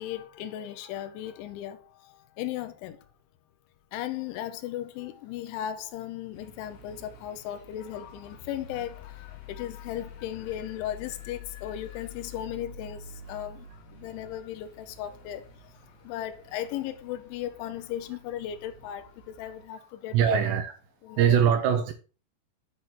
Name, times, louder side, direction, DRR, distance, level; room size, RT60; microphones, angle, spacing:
voice 1, 0.0-3.0 3.9-20.5 21.0-21.4, left 11 dB, 80° left, 3.2 m, -36 dB
sound 1, 6.3-19.6, left 4 dB, 65° left, 4.0 m, -48 dB
voice 2, 20.1-20.7 21.2-21.9, right 8 dB, 80° right, 2.7 m, -22 dB
9.5 x 3.9 x 5.7 m
omnidirectional pair, 5.5 m